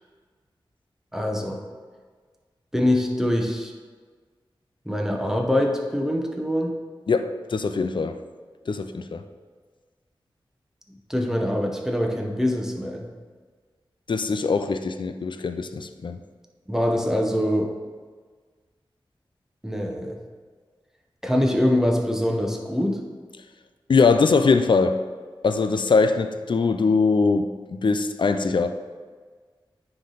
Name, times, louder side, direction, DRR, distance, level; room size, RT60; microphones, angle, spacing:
voice 1, 1.1-1.6 2.7-3.7 4.9-6.7 11.1-13.1 16.7-17.7 19.6-20.2 21.2-23.0, left 1 dB, 5° right, 1 dB, 0.9 m, -24 dB
voice 2, 7.1-8.2 8.7-9.2 14.1-16.2 23.9-25.0 25.4-28.7, left 4 dB, 60° left, 9 dB, 0.4 m, -22 dB
9.6 x 3.3 x 3.9 m, 1.5 s
wide cardioid pair, 60°, 9 cm